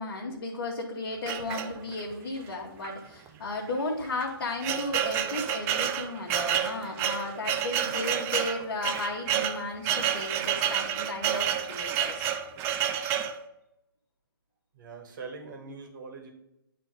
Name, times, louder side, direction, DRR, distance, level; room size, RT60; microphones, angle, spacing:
voice 1, 0.0-12.3, left 2 dB, 65° left, -3 dB, 1.4 m, -34 dB
sound 1, 1.3-2.1 2.8-3.0 3.3-3.4 4.0-13.4, right 9 dB, 20° right, 0.4 m, -29 dB
voice 2, 14.7-16.3, right 4 dB, 50° right, 3 dB, 1.7 m, -42 dB
9.0 x 3.5 x 4.9 m, 0.87 s
hypercardioid pair, 135°, 13 cm